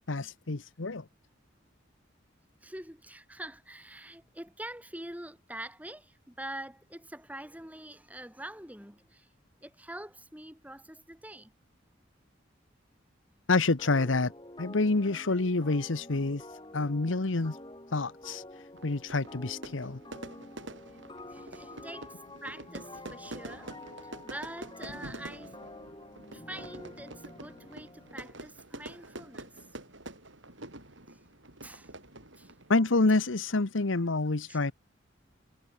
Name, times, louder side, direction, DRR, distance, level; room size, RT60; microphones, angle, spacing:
voice 1, 0.1-1.0 13.5-14.3 14.6-16.4 16.7-17.6 17.9-18.4 18.8-20.0 32.7-34.7, left 3 dB, 80° left, 1.1 m, -27 dB
voice 2, 2.6-9.3 9.6-11.5 20.9-21.0 21.3-23.7 24.0-25.6 26.3-29.7 31.1-31.2 31.6-31.9 32.4-32.5 34.5-34.6, right 1 dB, 10° right, 7.6 m, -45 dB
sound 1, 13.8-28.4, left 1 dB, 25° left, 4.6 m, -48 dB
Fire / Fireworks, 18.8-32.8, right 1 dB, 70° right, 7.5 m, -47 dB
head